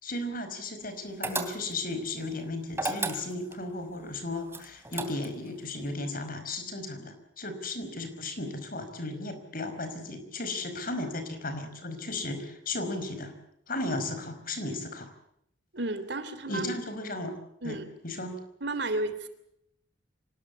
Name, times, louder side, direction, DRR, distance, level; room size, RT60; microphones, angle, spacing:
voice 1, 0.0-13.3 13.7-15.1 16.5-17.3 17.6-18.4, left 2 dB, 50° left, 9 dB, 5.1 m, -35 dB
sound 1, 1.2-1.9 2.7-3.6 4.5-5.5, right 2 dB, 15° right, 2.9 m, -33 dB
voice 2, 15.7-16.7 17.6-17.8 18.6-19.3, right 2 dB, 65° right, 11 dB, 3.1 m, -32 dB
26.0 x 19.5 x 8.5 m, 0.76 s
head